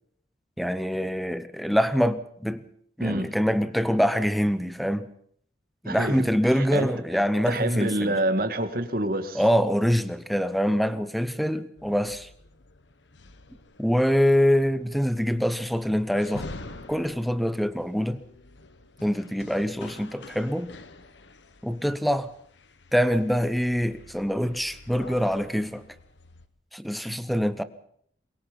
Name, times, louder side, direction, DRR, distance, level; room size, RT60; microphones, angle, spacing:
voice 1, 0.6-2.6 3.0-5.1 5.8-8.1 9.4-12.3 13.8-16.5 16.9-18.2 19.0-20.7 21.6-22.3 22.9-25.8 26.7-27.6, equal, ahead, 0.9 m, -24 dB
voice 2, 5.8-6.9 7.5-9.4, right 1 dB, 50° right, 2.1 m, -27 dB
sound 1, 11.8-26.5, left 2 dB, 85° left, 1.4 m, -47 dB
22.5 x 22.5 x 5.4 m
head